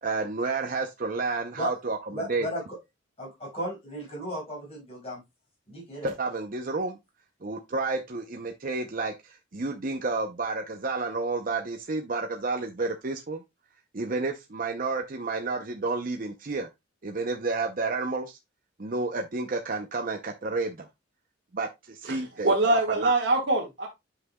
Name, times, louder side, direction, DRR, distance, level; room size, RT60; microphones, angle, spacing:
voice 1, 0.0-2.5 6.0-7.0 7.4-13.4 13.9-16.7 17.0-18.4 18.8-20.9 21.5-23.1, right 3 dB, 45° right, 0.7 m, -30 dB
voice 2, 2.1-2.8 3.2-5.2 5.7-6.1, equal, 30° left, 5.4 m, -35 dB
voice 3, 22.0-23.9, right 2 dB, 60° right, 1.6 m, -24 dB
9.7 x 5.8 x 2.3 m
head